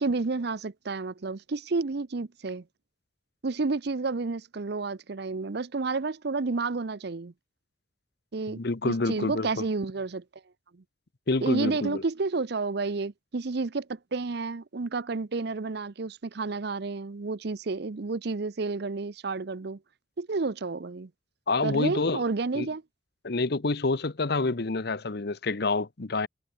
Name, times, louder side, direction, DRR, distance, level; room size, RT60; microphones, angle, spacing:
voice 1, 0.0-2.6 3.4-7.3 8.3-8.6 8.8-10.2 11.4-19.8 20.2-21.1 21.6-22.8, right 3 dB, 60° right, 0.6 m, -30 dB
voice 2, 8.5-9.5 11.3-12.0 21.5-22.2 22.5-22.7 23.2-26.3, left 3 dB, 55° left, 0.9 m, -27 dB
head